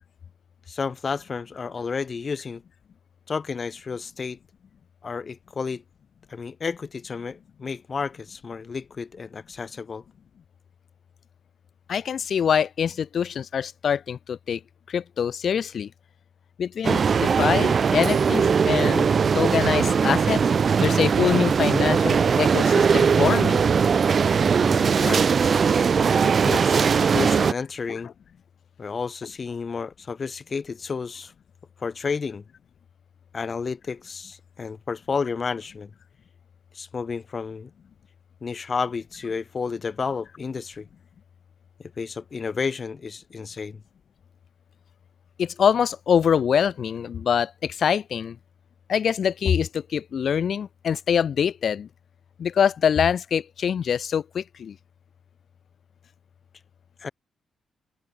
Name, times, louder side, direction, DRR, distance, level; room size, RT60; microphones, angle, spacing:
voice 1, 0.7-2.6 3.3-4.4 5.0-5.8 6.3-10.0 24.5-28.1 28.8-31.3 31.8-32.4 33.3-35.9 36.7-37.7 38.4-40.9 41.8-43.8 57.0-57.1, left 5 dB, 35° left, 2.0 m, -31 dB
voice 2, 11.9-14.6 14.9-15.9 16.6-19.1 19.3-20.4 20.8-23.8 26.5-26.6 27.9-28.0 45.4-48.4 48.9-51.9 52.4-54.7, left 7 dB, 55° left, 4.6 m, -24 dB
sound 1, 16.8-27.5, right 6 dB, 45° right, 2.2 m, -20 dB
cardioid pair, 130°, 0 cm